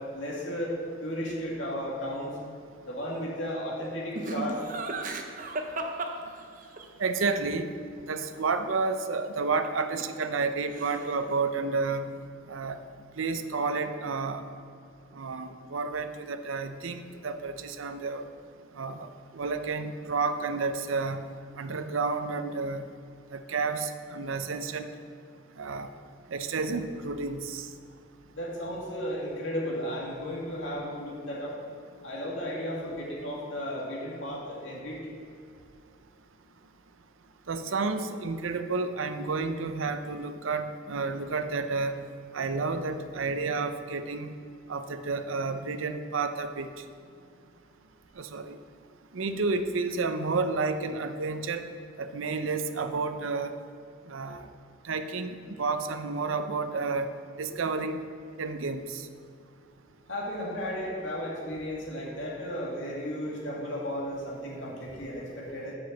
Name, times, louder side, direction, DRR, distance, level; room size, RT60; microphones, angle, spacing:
voice 1, 0.0-2.3 2.8-4.6 28.3-31.5 32.0-35.0 60.1-65.8, equal, 70° left, -4 dB, 2.3 m, -34 dB
Laughter, 4.2-6.9 9.6-10.5 10.7-11.3, right 2 dB, 40° right, 0.7 m, -35 dB
voice 2, 7.0-7.7 8.0-12.1 12.5-12.8 13.2-14.5 15.1-18.2 18.8-21.3 21.6-22.9 23.3-24.9 25.6-25.9 26.3-27.7 37.5-42.0 42.3-44.3 44.7-46.7 48.2-48.6 49.1-51.7 52.0-53.5 54.1-54.5 54.8-57.1 57.4-58.0 58.3-59.0, right 4 dB, 85° right, 9 dB, 0.6 m, -31 dB
7.8 x 6.1 x 6.8 m, 2.3 s
head